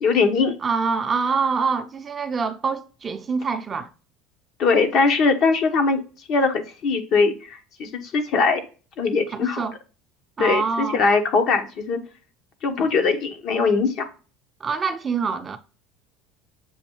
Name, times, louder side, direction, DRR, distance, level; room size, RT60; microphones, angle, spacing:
voice 1, 0.0-0.6 4.6-6.0 6.3-8.6 9.0-9.6 10.4-12.0 12.6-14.1, left 4 dB, 55° left, 0.9 m, -21 dB
voice 2, 0.6-3.9 9.3-9.8 10.4-11.0 14.6-15.6, right 5 dB, 30° right, 0.5 m, -25 dB
7.0 x 2.6 x 2.9 m
supercardioid pair, 100°, 0 cm